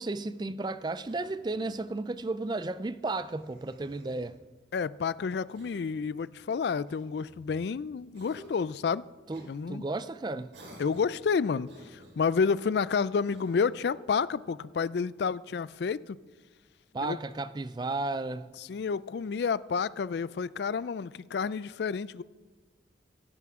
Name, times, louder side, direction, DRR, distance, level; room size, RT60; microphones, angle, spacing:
voice 1, 0.0-4.4 9.3-10.5 16.9-18.5, right 2 dB, 25° right, 0.4 m, -33 dB
Cough, 1.0-1.8 3.2-4.3 5.5-6.1 6.9-7.7 8.1-8.8 9.3-9.5 10.5-11.2 11.6-12.4 13.3-13.8, right 1 dB, 80° right, 4.1 m, -53 dB
voice 2, 4.7-9.0 9.5-9.8 10.8-16.2 17.0-17.2 18.6-22.2, left 5 dB, 65° left, 0.3 m, -30 dB
16.5 x 15.0 x 3.6 m
head